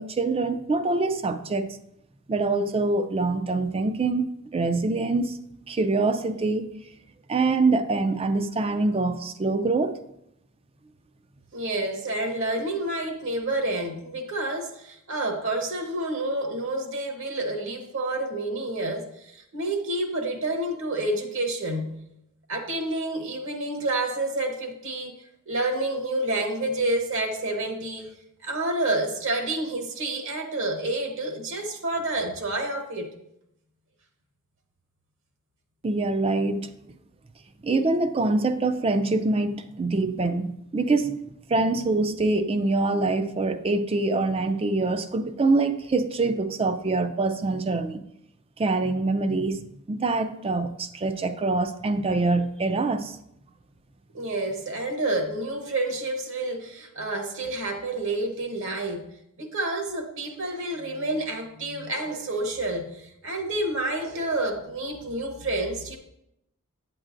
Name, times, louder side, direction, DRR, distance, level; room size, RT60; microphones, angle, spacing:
voice 1, 0.0-1.8 2.3-4.3 4.5-5.4 5.7-6.7 7.3-10.0 35.8-36.7 37.6-48.0 48.6-49.6 49.9-53.2, right 3 dB, 25° right, 0.4 m, -25 dB
voice 2, 11.5-21.9 22.5-25.2 25.5-28.1 28.4-33.1 54.1-59.1 59.4-66.0, right 2 dB, 60° right, 1.0 m, -29 dB
8.8 x 7.5 x 2.6 m
head